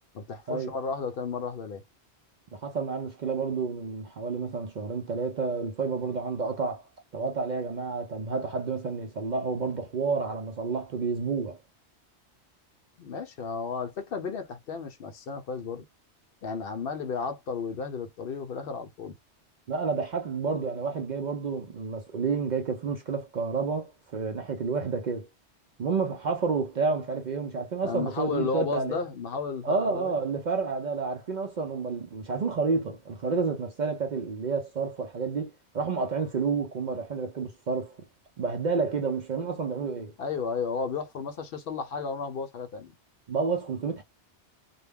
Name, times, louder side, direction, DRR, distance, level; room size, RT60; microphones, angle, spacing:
voice 1, 0.1-1.8 13.0-15.9 16.4-19.2 27.8-30.2 40.2-42.9, left 5 dB, 65° left, 0.7 m, -33 dB
voice 2, 2.5-6.8 7.1-11.6 19.7-25.3 25.8-29.0 29.6-38.0 38.4-40.1 43.3-44.0, right 4 dB, 55° right, 0.5 m, -30 dB
2.2 x 2.1 x 3.4 m
omnidirectional pair, 1.1 m